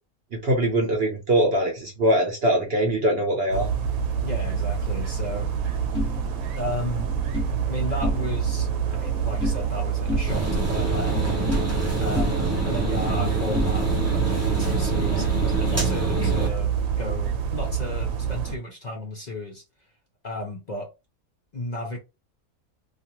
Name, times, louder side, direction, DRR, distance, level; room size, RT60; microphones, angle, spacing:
voice 1, 0.3-3.7, right 1 dB, 55° right, 0.8 m, -22 dB
sound 1, 3.5-18.6, right 7 dB, 85° right, 1.1 m, -27 dB
voice 2, 4.2-5.5 6.5-7.1 7.7-11.5 12.0-19.6 20.2-20.9 21.5-22.0, left 1 dB, 50° left, 0.5 m, -34 dB
sound 2, 5.9-7.5 7.9-8.6 8.8-9.8 10.1-11.9 12.1-14.2, left 1 dB, 15° left, 0.9 m, -31 dB
sound 3, 10.3-16.5, right 2 dB, 20° right, 0.4 m, -27 dB
2.4 x 2.4 x 2.8 m
omnidirectional pair, 1.5 m